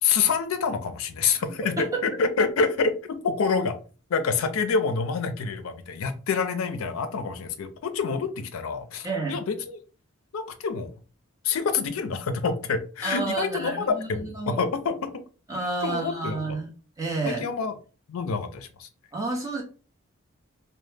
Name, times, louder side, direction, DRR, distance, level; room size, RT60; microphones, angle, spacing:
voice 1, 0.0-3.8 4.1-9.8 10.3-10.9 11.4-15.2 15.8-16.6 17.3-17.7 18.1-18.9, left 5 dB, 85° left, 0.4 m, -27 dB
voice 2, 1.6-2.0 9.0-9.4 13.0-14.7 15.5-16.7 17.0-17.5 19.1-19.6, right 3 dB, 15° right, 0.6 m, -30 dB
2.1 x 2.0 x 3.2 m
head